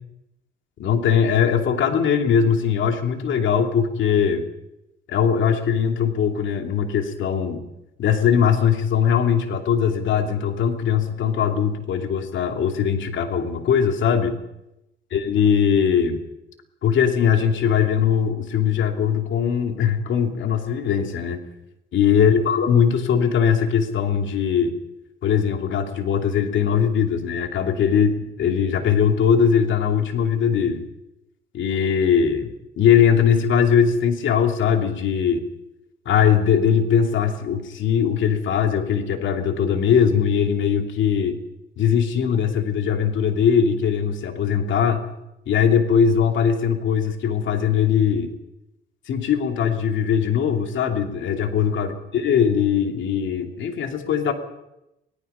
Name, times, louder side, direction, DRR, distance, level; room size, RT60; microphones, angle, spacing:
voice 1, 0.8-4.5 5.1-7.6 8.0-14.4 15.1-16.2 16.8-21.4 21.9-24.8 25.2-30.8 31.5-35.4 36.0-41.4 41.8-45.1 45.5-48.3 49.1-54.3, left 7 dB, 70° left, 4 dB, 2.8 m, -20 dB
25.5 x 18.5 x 5.6 m, 0.89 s
cardioid pair, 90°, 20 cm